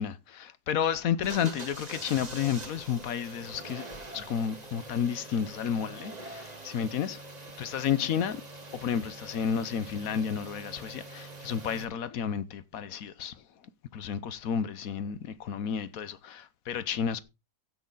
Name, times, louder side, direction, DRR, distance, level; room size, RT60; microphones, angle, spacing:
voice 1, 0.0-3.8 4.1-7.2 7.6-8.4 8.7-13.4 13.9-17.2, left 8 dB, 65° left, 1.1 m, -31 dB
sound 1, 1.2-11.8, right 2 dB, 25° right, 1.7 m, -44 dB
15.5 x 6.2 x 3.8 m
omnidirectional pair, 1.7 m